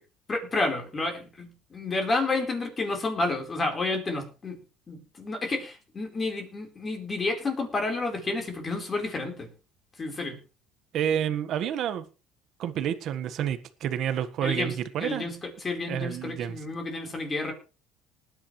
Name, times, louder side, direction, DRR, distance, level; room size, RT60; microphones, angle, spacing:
voice 1, 0.3-4.6 4.9-9.5 10.0-10.4 14.4-17.5, left 3 dB, 25° left, 4.4 m, -30 dB
voice 2, 10.9-12.0 12.6-15.3 15.9-16.6, right 9 dB, 50° right, 1.6 m, -29 dB
20.0 x 9.9 x 3.3 m
cardioid pair, 140°, 0 cm